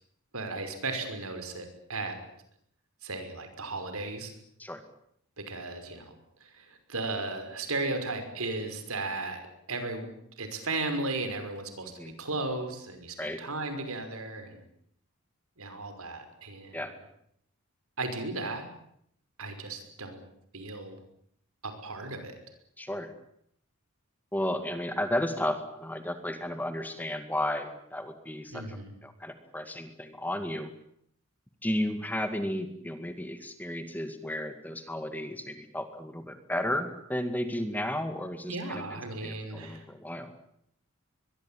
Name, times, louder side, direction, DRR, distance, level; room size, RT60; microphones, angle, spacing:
voice 1, 0.3-2.2 3.0-4.3 5.4-6.1 6.4-9.4 9.7-10.1 10.4-14.6 15.6-16.9 18.0-18.7 19.4-20.2 20.5-21.0 21.6-22.4 28.5-28.9 38.5-39.8, right 3 dB, 80° right, 8 dB, 5.8 m, -35 dB
voice 2, 11.8-12.1 13.2-13.4 16.7-16.9 22.8-23.1 24.3-28.8 29.0-30.7 31.6-40.3, left 1 dB, 10° left, 9 dB, 2.2 m, -33 dB
23.0 x 22.5 x 9.2 m, 0.69 s
head